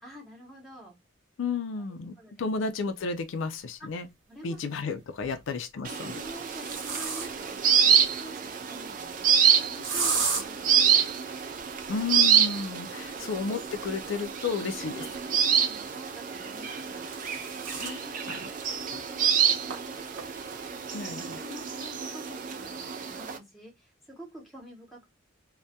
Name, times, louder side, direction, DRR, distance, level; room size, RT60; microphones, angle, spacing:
voice 1, 0.0-1.0 2.2-2.6 3.8-4.0 4.3-5.4 6.0-11.1 13.1-13.3 15.0-17.1 17.8-20.3 20.7-25.1, equal, ahead, 0.7 m, -48 dB
voice 2, 1.4-4.1 4.4-6.2 11.9-15.1 17.8-18.5 20.9-21.4, left 4 dB, 75° left, 0.4 m, -33 dB
sound 1, 3.4-3.5 5.0-5.4 6.0-7.6 9.8-10.4 13.0-15.7 16.7-18.0 18.5-18.6 18.9-19.0 19.7-19.8 20.2-20.6, right 5 dB, 75° right, 0.7 m, -35 dB
sound 2, 5.8-23.4, right 8 dB, 40° right, 0.3 m, -27 dB
2.2 x 2.1 x 2.7 m
head